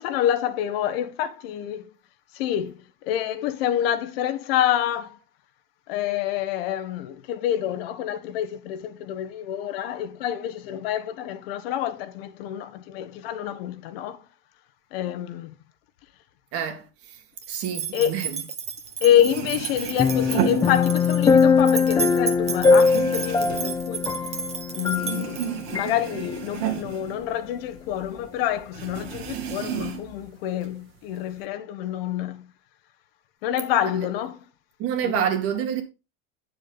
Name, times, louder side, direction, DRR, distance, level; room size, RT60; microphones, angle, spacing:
voice 1, 0.0-1.8 2.3-5.2 5.9-14.2 14.9-15.5 17.9-18.2 19.0-24.0 24.7-32.5 33.4-34.4 35.0-35.3, left 11 dB, 70° left, 1.4 m, -27 dB
voice 2, 16.5-16.8 17.5-18.4 34.8-35.8, right 9 dB, 50° right, 2.2 m, -27 dB
sound 1, 17.4-25.7, right 6 dB, 20° right, 1.5 m, -33 dB
sound 2, 18.9-19.0 19.1-21.4 21.7-24.6 24.9-27.9 28.2-28.3 28.7-30.2 30.6-31.4, right 9 dB, 75° right, 2.3 m, -32 dB
sound 3, 20.0-25.4 25.7-25.9, left 5 dB, 10° left, 0.6 m, -21 dB
9.9 x 7.0 x 3.9 m
supercardioid pair, 135°, 30 cm